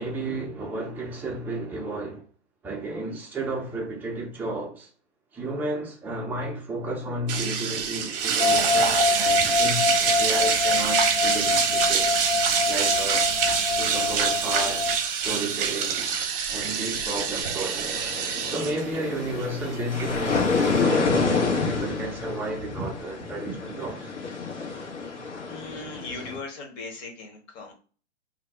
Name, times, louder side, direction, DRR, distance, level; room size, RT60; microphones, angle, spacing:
voice 1, 0.0-2.2 2.6-4.9 5.3-12.1 12.7-13.3 13.7-16.0 16.5-17.9 18.4-24.1, right 2 dB, 5° right, 0.5 m, -32 dB
sound 1, 7.3-20.8, right 7 dB, 50° right, 0.7 m, -25 dB
sound 2, 8.4-15.0, left 4 dB, 55° left, 0.6 m, -25 dB
sound 3, 17.8-26.4, left 4 dB, 75° left, 1.2 m, -28 dB
voice 2, 25.5-27.7, left 3 dB, 35° left, 1.0 m, -38 dB
2.6 x 2.2 x 3.4 m
hypercardioid pair, 120°, 35 cm